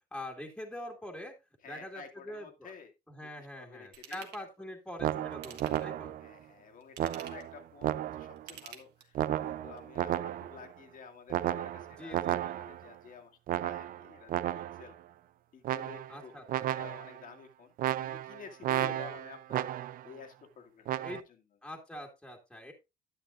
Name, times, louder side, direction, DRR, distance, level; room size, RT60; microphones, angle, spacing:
voice 1, 0.1-1.3 1.7-2.7 3.1-6.1 12.0-12.5 16.1-16.9 18.8-19.2 21.0-21.2 21.6-22.7, left 1 dB, 5° left, 1 dB, 2.1 m, -44 dB
voice 2, 1.6-2.9 3.2-4.2 6.2-12.2 12.5-14.9 15.5-16.3 16.6-17.7 18.0-19.7 20.0-21.2 22.5-22.7, left 6 dB, 55° left, 4 dB, 2.1 m, -51 dB
Ratchet pawl / Tools, 3.9-4.4 5.3-6.0 6.8-7.5 8.4-9.3 9.8-9.9, right 8 dB, 85° right, 2.0 m, -49 dB
sound 1, 5.0-6.3 7.0-8.5 9.2-10.7 11.3-12.9 13.5-14.9 15.6-16.2 16.5-17.2 17.8-20.1 20.9-21.2, right 12 dB, 55° right, 0.5 m, -33 dB
10.0 x 9.9 x 2.5 m, 0.25 s
cardioid pair, 110°, 17 cm